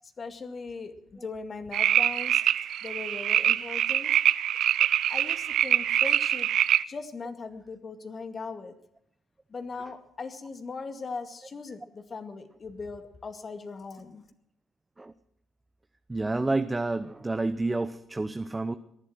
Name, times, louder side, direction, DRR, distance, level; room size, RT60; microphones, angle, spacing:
voice 1, 0.2-2.4 2.8-4.2 5.1-6.5 6.9-8.7 9.5-14.2, left 4 dB, 40° left, 2.0 m, -39 dB
sound 1, 1.7-6.8, right 11 dB, 65° right, 0.5 m, -24 dB
voice 2, 16.1-18.8, right 2 dB, 20° right, 0.8 m, -29 dB
19.0 x 11.0 x 6.1 m
hypercardioid pair, 55°, 0 cm